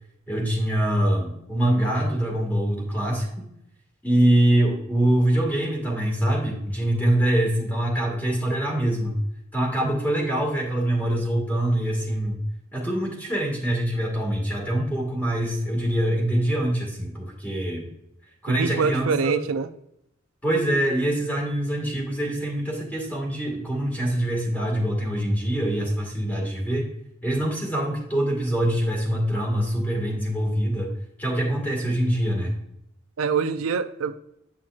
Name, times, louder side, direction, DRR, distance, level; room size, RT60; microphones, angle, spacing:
voice 1, 0.3-3.5 4.0-9.2 9.5-12.4 12.7-17.9 18.4-19.3 20.4-26.9 27.2-30.9 31.2-32.5, right 1 dB, 10° left, -1 dB, 2.0 m, -24 dB
voice 2, 18.5-19.7 33.2-34.1, right 5 dB, 85° right, 10 dB, 0.5 m, -24 dB
8.8 x 5.9 x 2.4 m, 0.77 s
head